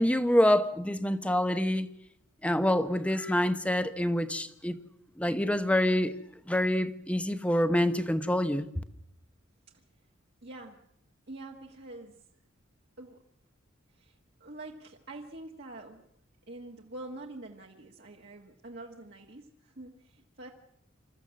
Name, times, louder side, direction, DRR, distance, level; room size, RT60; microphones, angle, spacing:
voice 1, 0.0-1.9 2.4-4.8 5.2-6.1 6.5-8.7, left 1 dB, 5° left, 0.9 m, -26 dB
voice 2, 10.4-10.8 11.3-12.2 13.0-13.2 13.9-16.0 16.5-20.5, right 2 dB, 55° right, 1.6 m, -46 dB
27.0 x 14.0 x 7.6 m
head